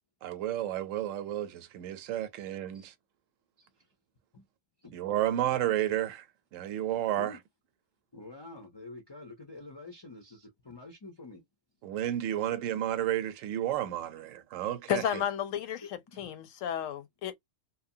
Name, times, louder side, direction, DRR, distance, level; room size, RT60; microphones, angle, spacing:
voice 1, 0.2-2.9 4.9-6.2 6.5-7.4 11.8-15.0, right 12 dB, 80° right, 0.9 m, -31 dB
voice 2, 8.1-11.4 16.1-16.3, left 2 dB, 35° left, 0.4 m, -47 dB
voice 3, 14.9-15.8 16.2-17.4, left 10 dB, 85° left, 1.0 m, -32 dB
2.8 x 2.1 x 2.6 m
omnidirectional pair, 1.3 m